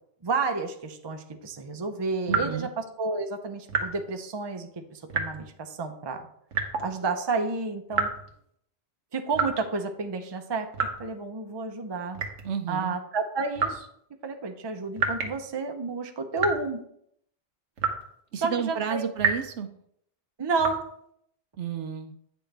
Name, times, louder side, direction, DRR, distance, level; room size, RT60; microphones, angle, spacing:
voice 1, 0.2-6.2 6.8-8.1 9.1-10.7 11.0-12.2 12.7-13.9 14.2-16.8 18.4-19.0 20.4-20.9, right 4 dB, 25° right, 5 dB, 0.6 m, -31 dB
voice 2, 2.3-2.7 12.4-13.0 18.3-19.7 21.6-22.1, right 7 dB, 70° right, 8 dB, 0.9 m, -31 dB
sound 1, 2.3-2.7 3.7-4.0 5.1-5.5 6.5-6.9 7.9-8.4 9.3-9.6 10.7-11.1 12.2-12.5 13.6-13.8 15.0-15.4 16.4-16.7 17.8-18.1 19.2-19.5 20.6-20.8, right 5 dB, 90° right, 1.4 m, -28 dB
9.4 x 6.2 x 3.4 m, 0.70 s
omnidirectional pair, 1.3 m